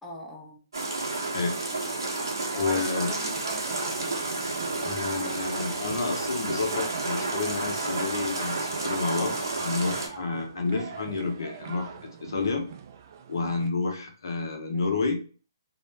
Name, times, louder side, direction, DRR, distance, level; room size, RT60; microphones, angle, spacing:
voice 1, 0.0-0.6 2.5-4.2 12.3-12.6 14.7-15.0, left 1 dB, ahead, -3 dB, 0.5 m, -41 dB
sound 1, 0.7-10.1, right 2 dB, 85° right, 0.9 m, -31 dB
voice 2, 2.6-3.1 4.8-12.7 13.3-15.2, left 3 dB, 70° left, 4 dB, 0.7 m, -30 dB
sound 2, 3.3-13.7, right 7 dB, 50° right, 0.3 m, -43 dB
2.5 x 2.1 x 3.1 m, 0.38 s
hypercardioid pair, 140°, 2 cm